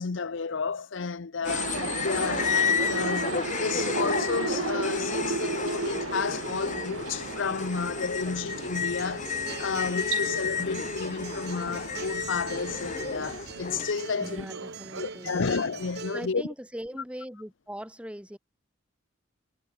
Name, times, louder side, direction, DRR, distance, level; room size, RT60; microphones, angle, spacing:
voice 1, 0.0-14.5 15.0-16.4, left 5 dB, 65° left, 0.7 m, -32 dB
sound 1, 1.4-13.9, left 5 dB, 40° left, 2.1 m, -32 dB
sound 2, 1.5-16.0, right 4 dB, 75° right, 0.9 m, -36 dB
Acoustic guitar, 8.3-16.2, right 4 dB, 55° right, 3.2 m, -42 dB
voice 2, 14.2-15.5 16.1-18.4, equal, 5° right, 3.2 m, -42 dB
head